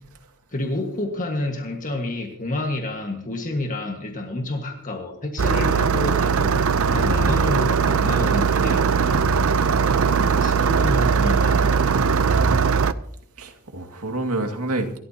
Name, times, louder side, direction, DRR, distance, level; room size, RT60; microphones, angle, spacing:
voice 1, 0.5-9.2 10.3-11.8, left 2 dB, 35° left, 1.7 m, -29 dB
Engine starting, 5.4-12.9, right 5 dB, 65° right, 0.6 m, -19 dB
voice 2, 9.8-10.3 13.4-15.0, right 2 dB, 90° right, 2.2 m, -28 dB
28.5 x 13.5 x 2.9 m
head